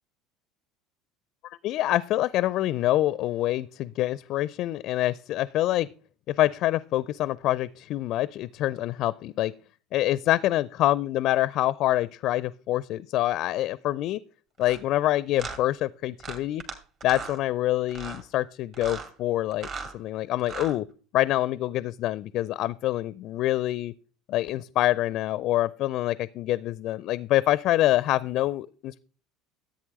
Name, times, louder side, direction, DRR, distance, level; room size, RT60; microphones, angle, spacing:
voice 1, 1.6-5.9 6.3-9.5 9.9-14.2 14.6-16.6 17.0-19.7 19.9-20.9 21.1-23.9 24.3-29.0, left 15 dB, 55° left, 19 dB, 0.4 m, -26 dB
sound 1, 14.6-14.8 15.4-15.6 16.2-16.7 17.0-17.4 17.9-18.2 18.7-19.1 19.5-19.9 20.4-20.8, right 4 dB, 45° right, 2.4 m, -37 dB
14.0 x 8.5 x 3.1 m, 0.38 s
figure-of-eight pair, 70°, 0 cm